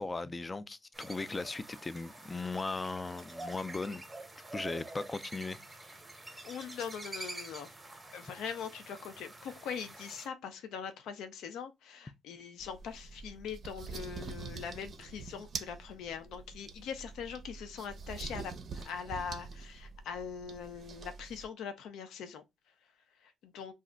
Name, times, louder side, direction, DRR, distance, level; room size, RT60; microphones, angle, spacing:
voice 1, 0.0-4.0 4.5-5.6, left 3 dB, 25° left, 0.3 m, -37 dB
sound 1, 0.9-10.3, right 2 dB, 15° right, 0.7 m, -47 dB
voice 2, 6.4-7.7 8.1-23.7, left 7 dB, 85° left, 0.5 m, -42 dB
sound 2, 12.6-21.5, right 5 dB, 50° right, 0.5 m, -45 dB
2.4 x 2.1 x 3.7 m
cardioid pair, 90°, 0 cm